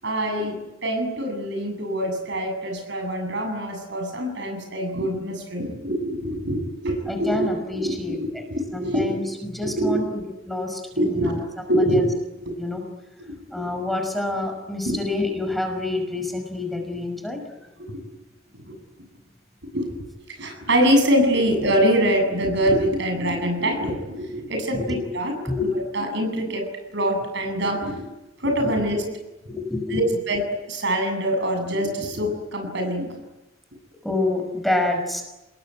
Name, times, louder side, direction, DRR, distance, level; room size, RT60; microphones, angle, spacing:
voice 1, 0.0-7.5 7.7-9.3 9.6-10.0 11.0-11.4 11.6-12.1 12.5-12.6 14.8-15.0 17.8-18.0 18.5-18.8 19.6-20.0 20.3-25.3 25.9-26.6 26.9-28.1 28.4-29.0 29.9-33.1, equal, 65° right, 5 dB, 8.0 m, -24 dB
voice 2, 7.1-8.4 8.7-11.4 11.7-12.1 12.6-12.8 13.5-17.4 24.7-25.1 25.4-25.7 28.6-28.7 29.5-30.0 34.0-35.2, left 2 dB, ahead, 3 dB, 5.8 m, -28 dB
28.5 x 20.5 x 9.9 m, 1.0 s
head